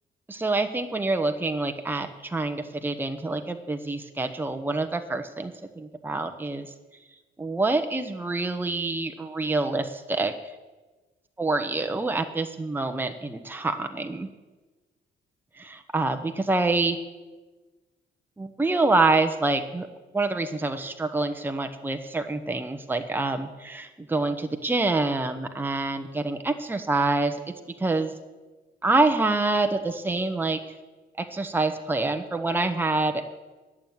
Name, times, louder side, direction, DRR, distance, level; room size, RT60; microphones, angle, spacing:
voice 1, 0.3-6.7 7.4-10.3 11.4-14.3 15.6-17.0 18.4-19.9 20.1-27.4 27.8-28.1 28.8-30.6 31.2-33.2, right 2 dB, 10° right, 6 dB, 0.9 m, -26 dB
11.0 x 7.3 x 9.4 m, 1.2 s
cardioid pair, 90°, 20 cm